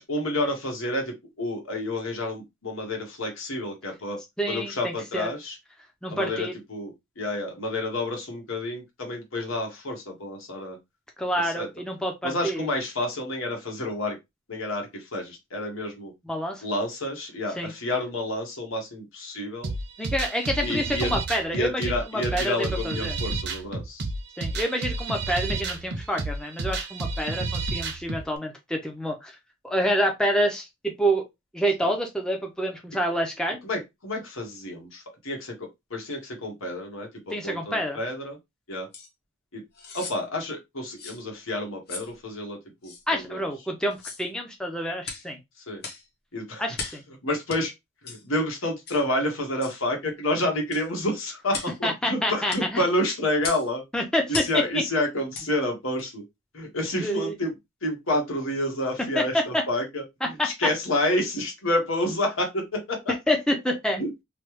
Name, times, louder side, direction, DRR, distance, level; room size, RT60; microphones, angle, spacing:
voice 1, 0.0-4.2 4.5-5.6 6.1-10.8 11.4-11.7 12.2-14.2 14.5-16.1 16.6-19.7 20.6-21.1 21.5-24.0 33.6-38.4 38.7-38.9 39.5-39.6 39.9-43.4 45.7-45.8 46.3-46.6 47.2-47.7 48.0-53.8 54.3-56.2 56.5-57.5 57.8-60.0 60.4-63.1 63.9-64.1, left 1 dB, 90° left, 1.2 m, -29 dB
voice 2, 4.4-5.3 6.0-6.5 11.2-12.7 16.2-16.6 17.5-17.7 20.0-23.2 24.4-29.3 29.6-31.3 31.5-33.6 37.3-38.0 43.1-45.4 46.6-47.0 51.8-52.8 53.9-54.6 57.0-57.3 59.2-59.6 60.4-60.5 63.3-64.0, equal, 5° left, 0.5 m, -27 dB
sound 1, 19.6-28.2, right 3 dB, 55° right, 0.6 m, -31 dB
sound 2, 38.9-39.1 39.7-40.2 41.0-41.2 41.9-42.1 42.8-43.0 43.9-44.3 45.0-45.3 45.8-46.1 46.7-47.0 47.5-47.6 48.1-48.2 48.9-49.0 49.6-49.8 50.7-50.9 51.5-51.8 52.5-52.7 53.4-53.7 54.3-54.6 55.3-55.5 56.0-56.1, left 4 dB, 50° left, 0.8 m, -36 dB
3.1 x 2.2 x 3.0 m
head